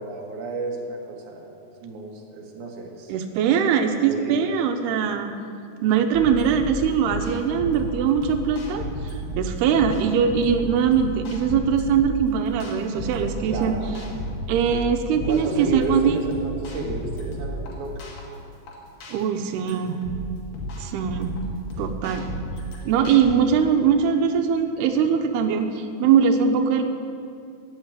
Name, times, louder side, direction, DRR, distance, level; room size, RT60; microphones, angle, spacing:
voice 1, 0.0-1.5 1.8-3.1 3.9-4.6 13.4-13.9 15.2-18.1 22.0-22.2, right 2 dB, 55° right, 0 dB, 3.1 m, -32 dB
voice 2, 3.1-5.3 5.8-8.8 9.4-13.7 14.5-16.2 19.1-20.0 20.8-21.4 21.8-22.3 22.8-26.8, right 7 dB, 90° right, 6 dB, 2.9 m, -21 dB
sound 1, 6.1-23.3, equal, 85° left, 4.6 m, -33 dB
16.0 x 8.4 x 9.7 m, 2.4 s
omnidirectional pair, 4.5 m